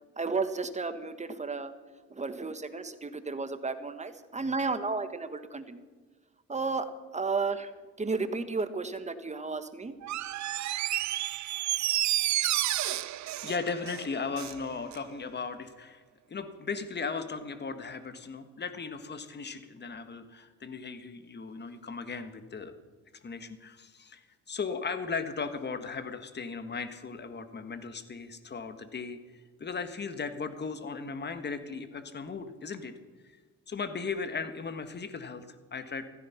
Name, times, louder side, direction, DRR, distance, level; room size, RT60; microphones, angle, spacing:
voice 1, 0.2-1.7 2.1-5.8 6.5-6.9 7.1-7.7 8.0-9.9, right 4 dB, 25° right, 10 dB, 1.5 m, -33 dB
Door, 10.0-14.6 14.9-15.0, right 14 dB, 70° right, 0.7 m, -30 dB
voice 2, 13.4-16.0 16.3-22.8 23.2-29.2 29.6-32.9 33.7-36.1, left 5 dB, 35° left, 9 dB, 1.6 m, -37 dB
15.5 x 14.0 x 5.8 m, 1.4 s
cardioid pair, 90°, 30 cm